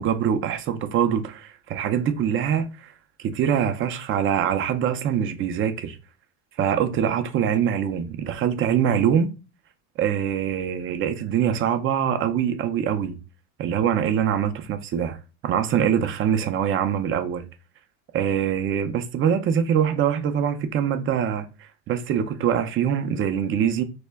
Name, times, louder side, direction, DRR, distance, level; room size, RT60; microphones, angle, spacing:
voice 1, 0.0-2.9 3.2-6.0 6.6-9.3 10.0-13.2 13.6-15.2 15.4-17.4 18.1-23.8, right 8 dB, 30° right, 0.4 m, -24 dB
2.1 x 2.1 x 3.4 m
hypercardioid pair, 85°, 42 cm